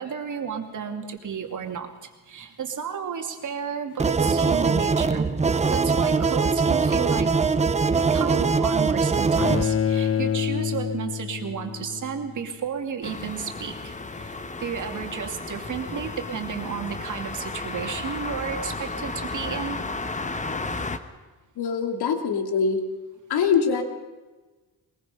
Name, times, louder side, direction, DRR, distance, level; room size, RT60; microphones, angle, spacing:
voice 1, 0.0-7.3 8.0-19.8, right 7 dB, 50° right, 5 dB, 2.6 m, -33 dB
sound 1, 4.0-9.6, right 4 dB, 20° right, 0.6 m, -22 dB
Bowed string instrument, 9.4-12.4, left 8 dB, 35° left, 1.0 m, -27 dB
sound 2, 13.0-21.0, left 3 dB, 20° left, 1.1 m, -33 dB
voice 2, 21.6-22.8 23.3-23.8, left 6 dB, 75° left, 5 dB, 2.5 m, -23 dB
22.0 x 21.5 x 5.6 m, 1.2 s
wide cardioid pair, 155°, 39 cm